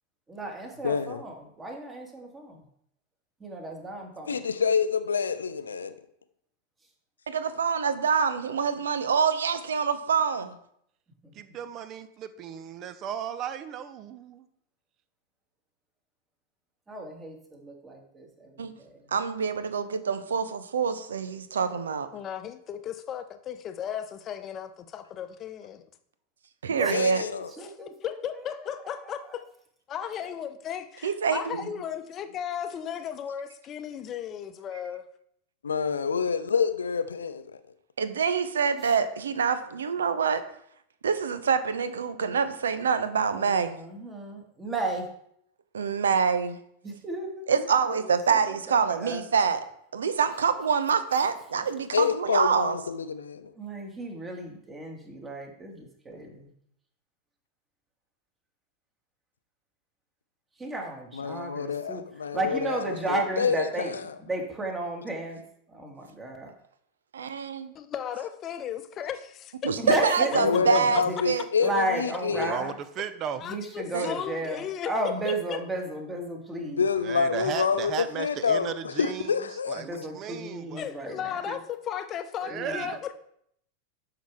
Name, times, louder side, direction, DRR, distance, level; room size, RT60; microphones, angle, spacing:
voice 1, 0.3-2.6 3.4-4.4 11.2-11.6 16.9-19.1 26.6-28.9 29.2-29.4 38.8-38.9 43.3-45.1 46.8-47.5 47.9-48.4 48.7-49.2 53.6-56.5 60.6-62.0 62.3-63.9 64.2-65.4 65.7-66.5 69.8-71.1 71.6-72.7 73.4-76.9 79.8-81.4 82.5-82.9, right 2 dB, 15° right, 2.1 m, -34 dB
voice 2, 0.8-1.2 4.3-5.9 26.9-27.5 35.6-37.6 51.9-53.5 61.1-64.0 70.3-72.6 76.6-80.1, left 6 dB, 70° left, 0.7 m, -27 dB
voice 3, 7.3-10.5 18.6-18.7 19.1-22.1 26.6-27.2 31.0-31.7 38.0-40.4 41.0-43.8 45.7-46.6 47.5-49.6 49.9-52.8 67.1-67.7 69.6-71.4 73.9-74.1, right 6 dB, 65° right, 0.8 m, -26 dB
voice 4, 11.3-14.5 72.3-73.4 77.0-79.4 79.7-80.8 81.5-81.6 82.4-83.0, right 8 dB, 35° right, 0.8 m, -35 dB
voice 5, 22.1-25.8 27.6-29.4 29.9-35.0 67.7-70.0 70.5-70.6 73.4-75.6 80.8-83.1, left 9 dB, 30° left, 0.8 m, -35 dB
11.5 x 5.8 x 3.7 m
figure-of-eight pair, 90°, 0 cm